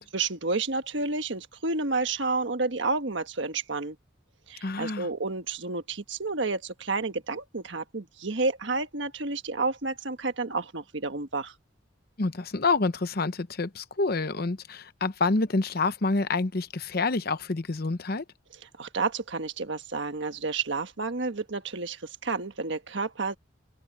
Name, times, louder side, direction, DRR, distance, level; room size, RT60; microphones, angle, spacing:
voice 1, 0.0-4.0 4.5-11.5 18.8-23.4, right 3 dB, 65° right, 1.4 m, -30 dB
voice 2, 4.6-5.1 12.2-18.2, left 3 dB, 50° left, 0.8 m, -27 dB
open air
head